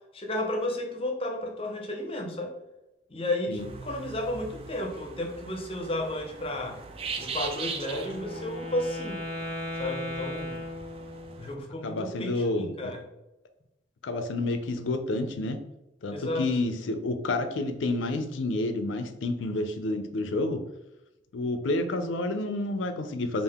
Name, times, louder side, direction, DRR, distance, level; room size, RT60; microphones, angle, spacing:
voice 1, 0.1-2.5 3.1-6.8 7.2-9.2 9.8-10.6 11.4-13.0 16.1-16.5, left 1 dB, 30° left, 3 dB, 0.6 m, -32 dB
sound 1, 3.6-11.5, right 5 dB, 30° right, 0.3 m, -41 dB
Wind instrument woodwind instrument, 7.8-11.5, left 1 dB, 5° left, 0.9 m, -37 dB
voice 2, 11.8-12.9 14.0-15.6 16.0-20.6 21.3-23.4, left 2 dB, 85° left, 8 dB, 0.5 m, -29 dB
3.6 x 2.5 x 3.5 m, 0.93 s
head